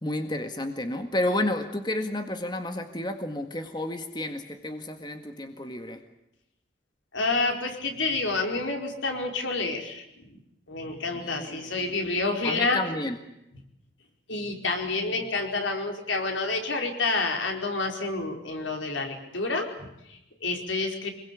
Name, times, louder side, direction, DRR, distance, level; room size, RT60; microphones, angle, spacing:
voice 1, 0.0-6.0 11.2-11.6 12.4-13.2, left 1 dB, 25° left, 6 dB, 1.8 m, -31 dB
voice 2, 7.1-10.4 10.7-12.8 14.3-21.1, left 3 dB, 80° left, 3 dB, 4.9 m, -29 dB
26.5 x 22.0 x 8.5 m, 0.85 s
head